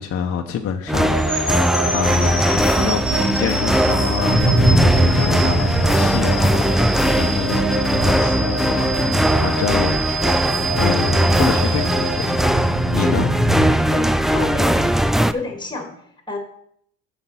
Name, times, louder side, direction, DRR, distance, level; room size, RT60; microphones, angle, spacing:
voice 1, 0.0-12.4 12.9-13.3, left 8 dB, 50° left, 3 dB, 0.8 m, -27 dB
sound 1, 0.9-15.3, right 1 dB, ahead, 0.3 m, -20 dB
sound 2, 1.0-13.2, right 2 dB, 40° right, 3.9 m, -27 dB
sound 3, 2.8-14.9, right 1 dB, 75° right, 3.4 m, -24 dB
voice 2, 13.9-14.8 15.3-15.9 16.3-16.4, left 3 dB, 15° left, 3 dB, 2.3 m, -28 dB
7.6 x 6.0 x 5.7 m, 0.68 s
cardioid pair, 100°, 29 cm